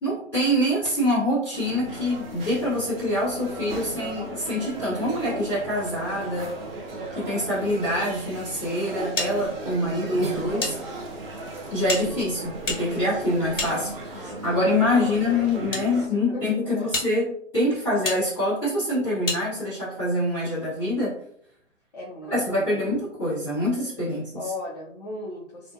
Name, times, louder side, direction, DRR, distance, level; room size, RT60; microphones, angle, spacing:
voice 1, 0.0-6.5 7.1-10.8 11.7-21.2 22.3-24.3, left 1 dB, 5° left, -16 dB, 0.9 m, -25 dB
sound 1, 1.5-16.1, right 2 dB, 45° right, 0.6 m, -36 dB
sound 2, 9.2-10.7 11.0-11.1 11.8-14.3 15.1-15.8 16.4-16.5 16.9-17.1 18.0-18.2 19.2-19.4, left 3 dB, 80° left, 1.2 m, -31 dB
voice 2, 14.1-17.0 21.9-23.0 24.3-25.7, left 1 dB, 35° left, -6 dB, 0.4 m, -38 dB
2.5 x 2.1 x 2.6 m, 0.67 s
hypercardioid pair, 155°, 39 cm